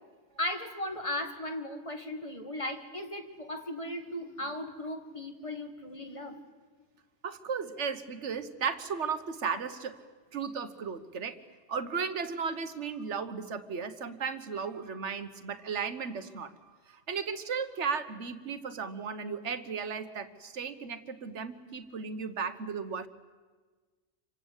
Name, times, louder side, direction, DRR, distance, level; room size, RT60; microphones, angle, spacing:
voice 1, 0.4-6.4, left 1 dB, 30° left, 5 dB, 1.8 m, -37 dB
voice 2, 7.2-10.0 10.3-11.4 11.7-23.1, right 6 dB, 85° right, 10 dB, 1.5 m, -35 dB
27.5 x 24.5 x 8.1 m, 1.4 s
omnidirectional pair, 1.2 m